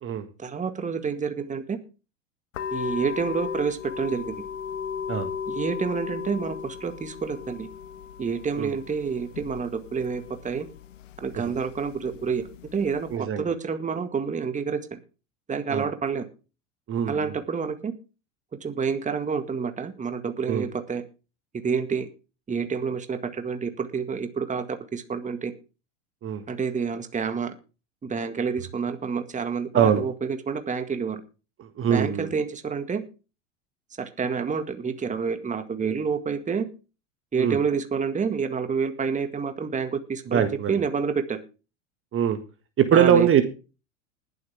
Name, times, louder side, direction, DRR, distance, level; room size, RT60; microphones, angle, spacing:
voice 1, 0.4-1.8 2.7-4.5 5.5-7.7 8.2-10.7 11.2-12.5 12.7-15.0 15.5-16.3 17.1-17.9 18.6-21.0 21.6-22.1 22.5-25.5 26.5-27.5 28.0-31.2 31.9-33.0 34.0-36.7 37.3-41.4 42.9-43.3, right 5 dB, 20° right, 9 dB, 1.8 m, -28 dB
sound 1, 2.5-13.2, left 7 dB, 80° left, 1.4 m, -36 dB
voice 2, 13.1-13.5 15.7-15.9 16.9-17.3 20.5-20.7 26.2-26.4 29.7-30.0 31.6-32.3 37.4-37.6 40.3-40.8 42.1-42.4 42.8-43.4, right 8 dB, 35° right, 9 dB, 1.8 m, -22 dB
20.0 x 8.1 x 3.5 m, 0.32 s
hypercardioid pair, 90°, 37 cm